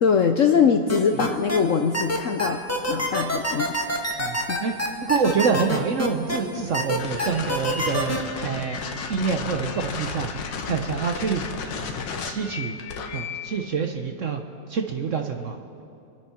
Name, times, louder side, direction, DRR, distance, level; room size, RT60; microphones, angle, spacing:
voice 1, 0.0-2.6 2.9-3.7 4.5-4.6, left 6 dB, 60° left, 6 dB, 0.8 m, -22 dB
sound 1, 0.9-1.6 1.9-6.4 6.7-8.2, equal, 10° left, 1.3 m, -25 dB
voice 2, 4.2-8.2 8.4-8.8 9.1-10.3 10.7-11.4 12.2-12.8 13.1-14.4 14.7-15.8, right 5 dB, 55° right, 5 dB, 0.9 m, -26 dB
sound 2, 7.0-13.6, left 5 dB, 75° left, 1.7 m, -33 dB
26.5 x 9.2 x 5.8 m, 2.6 s
omnidirectional pair, 2.0 m